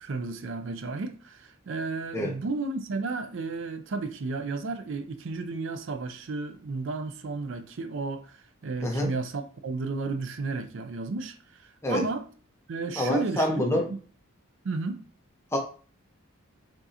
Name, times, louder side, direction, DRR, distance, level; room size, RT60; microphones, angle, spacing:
voice 1, 0.0-12.3 12.7-14.0 14.6-15.0, right 3 dB, 60° right, 0.4 m, -33 dB
voice 2, 8.8-9.1 11.8-12.0 13.0-13.9 15.5-15.6, left 1 dB, 15° left, 0.8 m, -26 dB
4.8 x 3.7 x 2.8 m
head